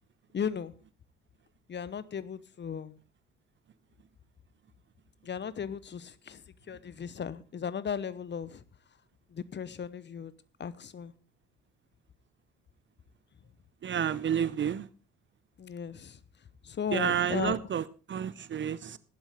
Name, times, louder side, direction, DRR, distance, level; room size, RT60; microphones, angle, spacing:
voice 1, 0.3-0.7 1.7-3.0 5.2-8.6 9.3-10.3 10.6-11.1 15.6-16.2 16.6-17.6, left 7 dB, 35° left, 0.9 m, -36 dB
voice 2, 13.8-14.9 16.9-19.0, right 8 dB, 35° right, 0.7 m, -30 dB
15.0 x 11.5 x 3.6 m
hypercardioid pair, 50°, 31 cm